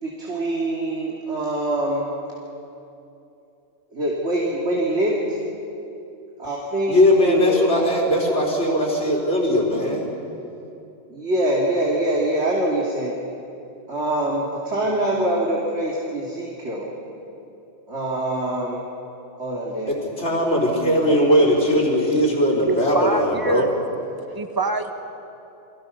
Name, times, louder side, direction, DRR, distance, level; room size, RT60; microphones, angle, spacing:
voice 1, 0.0-2.1 3.9-5.4 6.4-7.9 11.1-13.1 13.9-16.9 17.9-18.8 19.4-19.9 20.7-21.5, right 1 dB, 70° right, -4 dB, 3.0 m, -24 dB
voice 2, 6.9-10.1 19.9-23.7, equal, 75° left, -2 dB, 4.6 m, -19 dB
voice 3, 22.7-23.7 24.3-24.9, right 2 dB, 20° right, 5 dB, 1.5 m, -24 dB
29.5 x 23.0 x 5.9 m, 2.8 s
omnidirectional pair, 1.2 m